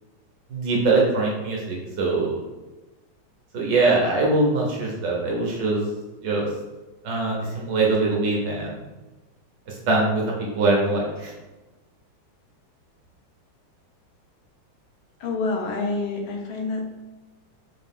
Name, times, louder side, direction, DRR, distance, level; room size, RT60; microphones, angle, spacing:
voice 1, 0.5-2.4 3.5-5.8 6.2-6.5 7.0-8.7 9.7-10.2 10.6-11.3, right 3 dB, 65° right, -2 dB, 1.3 m, -22 dB
voice 2, 15.2-16.9, left 3 dB, 80° left, 2 dB, 1.5 m, -27 dB
4.6 x 2.4 x 3.5 m, 1.1 s
omnidirectional pair, 2.3 m